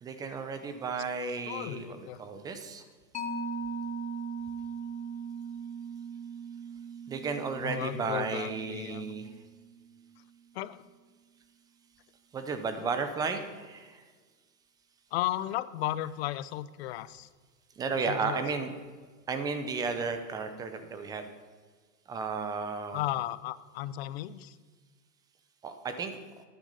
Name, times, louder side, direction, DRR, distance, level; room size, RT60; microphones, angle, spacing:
voice 1, 0.0-2.8 7.1-9.3 12.3-14.0 17.8-18.7 19.3-21.3 22.1-23.0 25.6-26.2, right 4 dB, 10° right, 8 dB, 0.5 m, -33 dB
voice 2, 1.3-2.2 7.6-9.1 10.5-10.8 15.1-17.3 18.1-18.6 22.9-24.6, left 14 dB, 40° left, 16 dB, 0.6 m, -35 dB
Mallet percussion, 3.1-10.2, right 4 dB, 15° left, 1.0 m, -39 dB
11.5 x 9.6 x 6.6 m, 1.5 s
hypercardioid pair, 140°, 49 cm